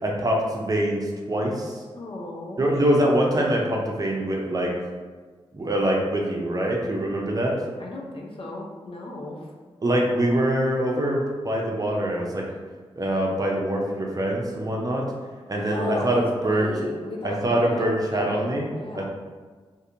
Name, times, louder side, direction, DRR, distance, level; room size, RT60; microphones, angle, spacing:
voice 1, 0.0-1.8 2.6-4.7 5.5-7.5 9.8-12.4 13.0-15.0 15.5-16.7 17.2-18.6 18.9-19.0, right 1 dB, 35° right, -1 dB, 0.6 m, -24 dB
voice 2, 1.9-2.6 7.8-9.5 15.6-17.8 18.1-19.0, left 2 dB, 60° left, -2 dB, 0.6 m, -35 dB
2.7 x 2.6 x 2.5 m, 1.4 s
cardioid pair, 50°, 11 cm